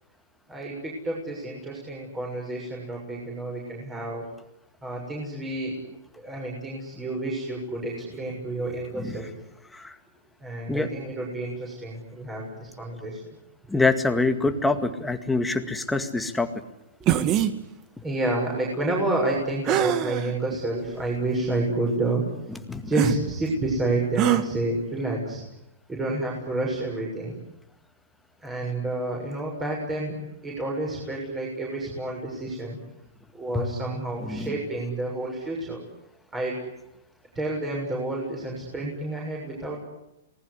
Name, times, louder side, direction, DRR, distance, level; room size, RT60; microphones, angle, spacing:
voice 1, 0.5-4.3 4.8-5.8 6.2-9.3 10.4-13.2 17.0-17.4 18.0-22.2 22.7-25.4 25.9-27.4 28.4-30.1 30.4-32.8 33.3-35.8 36.3-36.6 37.4-39.8, right 2 dB, 10° right, -2 dB, 7.0 m, -29 dB
voice 2, 13.7-16.5 17.3-17.4 22.7-22.8 33.5-33.6 34.2-34.6, left 3 dB, 5° left, 7 dB, 2.0 m, -25 dB
sound 1, 17.1-17.5 19.7-20.3 21.0-21.1 22.9-23.2 24.2-24.4, right 12 dB, 30° right, 1.7 m, -23 dB
27.0 x 20.0 x 9.9 m, 0.86 s
hypercardioid pair, 150°, 0 cm